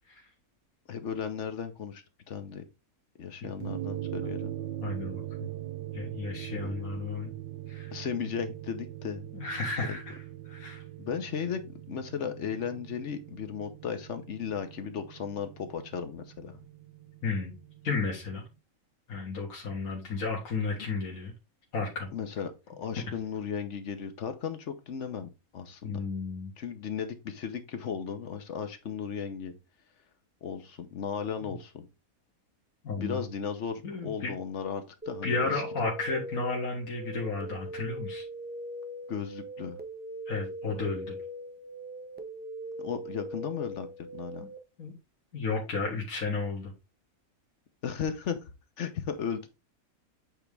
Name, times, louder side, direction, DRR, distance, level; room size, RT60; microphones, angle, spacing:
voice 1, 0.9-2.6 3.2-4.5 6.5-6.9 7.9-9.3 9.8-10.0 11.0-16.5 20.7-20.9 22.1-26.0 26.6-29.5 30.4-31.9 32.9-35.6 39.1-39.8 42.8-43.9 44.1-44.4 47.8-48.4 48.8-49.5, left 7 dB, 55° left, 1.1 m, -36 dB
sound 1, 3.6-18.1, right 13 dB, 45° right, 0.7 m, -41 dB
voice 2, 4.8-5.5 5.9-7.3 7.7-8.0 9.3-10.2 10.5-10.8 17.2-17.5 17.8-18.4 19.1-21.3 21.7-22.1 25.8-26.5 31.4-31.5 32.8-33.3 33.8-34.3 35.2-38.2 40.3-41.2 44.8-44.9 45.3-46.7, left 3 dB, 75° left, 2.0 m, -33 dB
sound 2, 35.0-44.6, right 1 dB, 15° right, 0.4 m, -41 dB
8.0 x 3.5 x 3.3 m
omnidirectional pair, 1.5 m